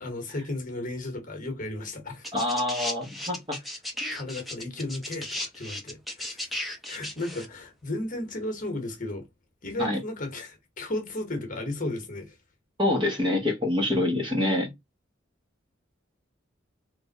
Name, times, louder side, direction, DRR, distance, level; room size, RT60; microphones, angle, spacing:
voice 1, 0.0-2.3 4.1-6.6 6.9-9.2 9.6-12.4, left 2 dB, 40° left, 1.2 m, -34 dB
sound 1, 2.2-7.5 8.5-8.6, left 1 dB, ahead, 0.9 m, -35 dB
voice 2, 2.3-3.6 4.0-4.1 9.8-10.0 12.8-14.7, left 1 dB, 25° right, 1.2 m, -26 dB
3.5 x 2.6 x 4.1 m
head